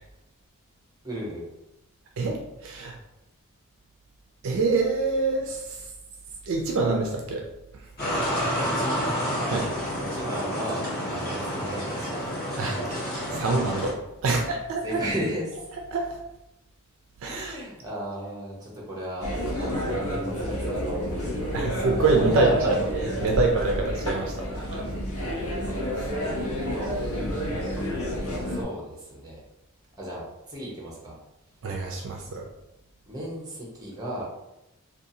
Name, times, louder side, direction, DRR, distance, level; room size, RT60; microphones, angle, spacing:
voice 1, 1.0-1.4 8.6-9.0 10.0-10.8 11.2-12.3 14.2-15.7 17.3-19.3 19.6-21.6 22.2-22.7 24.5-24.9 26.1-26.9 28.4-29.4 30.0-31.2 32.2-32.3 33.1-34.2, equal, 15° right, -3 dB, 0.7 m, -35 dB
voice 2, 2.2-3.0 4.4-5.9 6.4-7.4 9.5-9.7 12.6-12.8 13.1-15.0 15.9-16.2 17.2-17.6 21.5-22.8 23.2-24.4 24.6-24.8 26.0-26.1 31.6-32.5, right 3 dB, 60° right, 1 dB, 0.4 m, -25 dB
sound 1, 8.0-13.9, equal, 45° left, 1.1 m, -29 dB
sound 2, 19.2-28.6, equal, 70° left, 0.6 m, -29 dB
2.7 x 2.3 x 2.7 m, 0.91 s
head